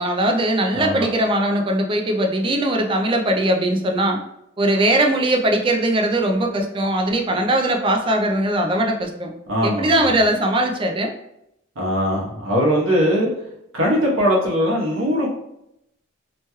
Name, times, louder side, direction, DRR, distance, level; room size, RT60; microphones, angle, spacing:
voice 1, 0.0-4.2 4.6-9.3 9.6-11.1, right 1 dB, 25° right, 3 dB, 0.3 m, -20 dB
voice 2, 0.7-1.1 9.5-10.1 11.8-13.3 13.7-15.3, equal, 70° right, -3 dB, 1.0 m, -20 dB
3.0 x 2.9 x 2.2 m, 0.81 s
head